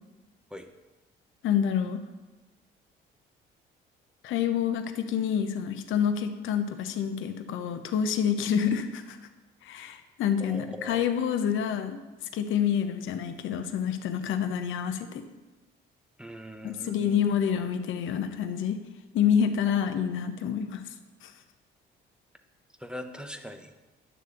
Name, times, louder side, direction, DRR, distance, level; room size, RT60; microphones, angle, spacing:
voice 1, 1.4-2.0 4.2-9.2 9.6-12.0 12.3-15.2 16.6-18.8 19.1-20.8 21.2-21.3, left 8 dB, 70° left, 8 dB, 0.7 m, -27 dB
voice 2, 10.4-11.1 16.2-17.2 22.8-23.7, equal, 5° right, 6 dB, 0.8 m, -41 dB
9.7 x 3.4 x 6.7 m, 1.2 s
supercardioid pair, 75°, 21 cm